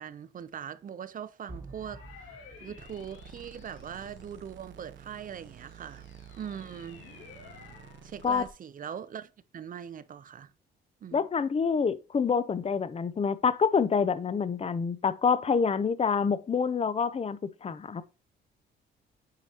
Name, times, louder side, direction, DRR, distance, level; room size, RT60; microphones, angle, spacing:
voice 1, 0.0-2.0 2.6-6.1 6.4-7.0 8.0-10.5 11.0-11.3, right 8 dB, 45° right, 0.6 m, -41 dB
sound 1, 1.5-4.4, right 2 dB, 15° right, 1.3 m, -49 dB
sound 2, 1.7-4.6 5.2-8.1, left 5 dB, 80° left, 2.3 m, -53 dB
sound 3, 2.8-8.5, right 6 dB, 65° right, 0.9 m, -50 dB
voice 2, 11.1-18.0, left 6 dB, 30° left, 0.6 m, -27 dB
8.5 x 4.9 x 2.9 m
cardioid pair, 90°, 20 cm